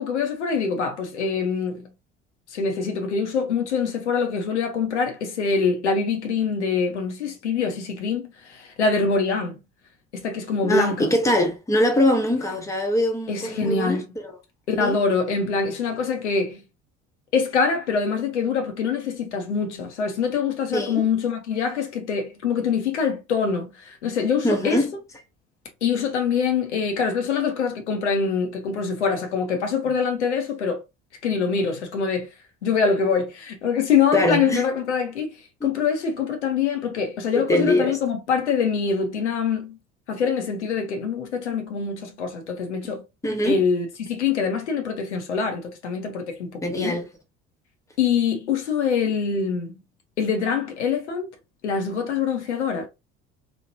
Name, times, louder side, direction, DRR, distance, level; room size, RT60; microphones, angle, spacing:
voice 1, 0.0-1.9 2.5-9.6 10.1-11.1 13.3-14.1 14.7-16.6 17.3-24.8 25.8-30.8 31.2-32.3 32.6-39.8 40.1-43.0 43.4-47.0 48.0-49.7 50.2-51.3 51.6-52.9, left 5 dB, 80° left, 0.7 m, -24 dB
voice 2, 10.6-14.3 14.8-15.0 20.7-21.0 24.4-24.9 34.1-34.6 35.6-35.7 37.5-38.0 43.2-43.6 46.6-47.1, left 1 dB, 10° left, 0.8 m, -22 dB
3.0 x 2.1 x 2.7 m
figure-of-eight pair, 60°, 34 cm